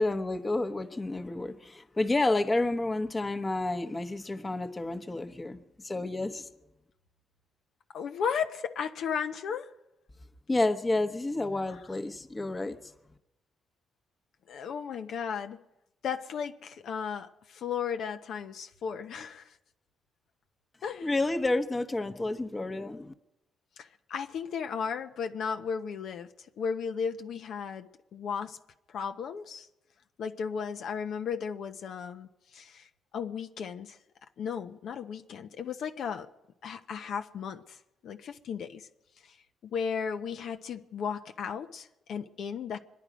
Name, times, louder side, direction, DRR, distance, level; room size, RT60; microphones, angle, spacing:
voice 1, 0.0-6.5 10.5-12.8 21.0-23.1, left 2 dB, 20° left, 1.0 m, -30 dB
voice 2, 7.9-9.7 14.5-15.6 16.0-19.6 20.8-21.1 23.8-26.3 26.6-28.6 28.9-29.7 30.2-34.0 34.4-36.3 36.6-37.8 38.0-38.9 39.2-39.4 39.6-42.8, left 6 dB, 70° left, 0.8 m, -35 dB
25.0 x 10.5 x 5.1 m
cardioid pair, 90°, 0 cm